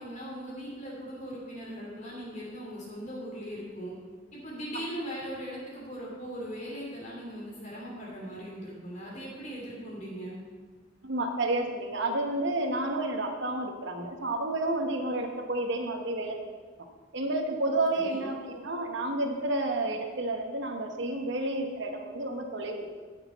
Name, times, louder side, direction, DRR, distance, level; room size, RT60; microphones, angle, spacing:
voice 1, 0.0-3.9 4.3-10.4 18.0-18.3, equal, 35° left, -5 dB, 3.0 m, -39 dB
voice 2, 11.0-16.4 17.1-22.9, right 2 dB, 55° right, 3 dB, 1.1 m, -30 dB
13.0 x 6.6 x 5.7 m, 1.5 s
head